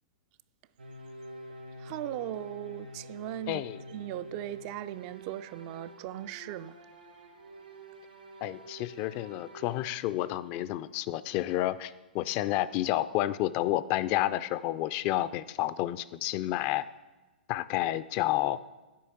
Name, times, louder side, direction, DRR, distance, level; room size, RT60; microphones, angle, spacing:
sound 1, 0.8-10.0, equal, 85° right, 2.2 m, -47 dB
voice 1, 1.8-6.9, right 14 dB, 40° right, 0.3 m, -38 dB
voice 2, 3.5-3.8 8.4-16.8 17.5-18.6, left 14 dB, 35° left, 0.4 m, -30 dB
8.4 x 5.5 x 7.8 m
figure-of-eight pair, 105°, 5 cm